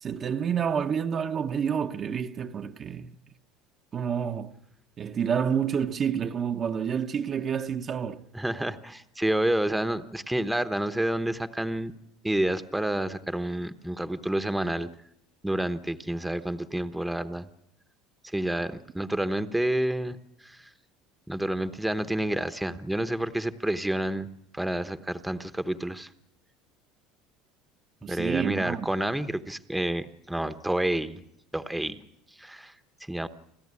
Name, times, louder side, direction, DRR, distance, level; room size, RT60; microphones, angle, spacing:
voice 1, 0.0-3.1 3.9-4.6 5.0-8.3 28.0-28.9, right 7 dB, 35° right, 0.9 m, -29 dB
voice 2, 8.3-11.9 12.2-14.9 15.4-17.5 18.2-20.7 21.3-24.3 24.5-26.1 28.1-31.2 31.5-32.0 32.4-32.7 33.1-33.3, right 1 dB, 5° right, 1.0 m, -29 dB
29.0 x 14.0 x 9.7 m
cardioid pair, 130°, 0 cm